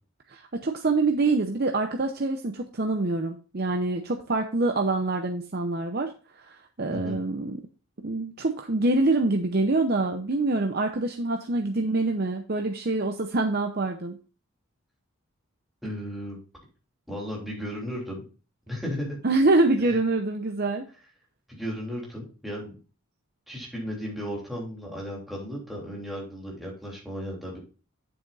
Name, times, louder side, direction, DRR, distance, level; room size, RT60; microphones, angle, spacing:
voice 1, 0.3-7.6 8.0-14.2 19.2-20.8, right 2 dB, 45° right, 4 dB, 0.7 m, -25 dB
voice 2, 15.8-16.4 17.1-18.2 18.7-19.2 19.9-20.0 21.5-22.7 23.5-27.6, equal, ahead, -4 dB, 3.1 m, -35 dB
9.1 x 7.8 x 2.5 m, 0.36 s
head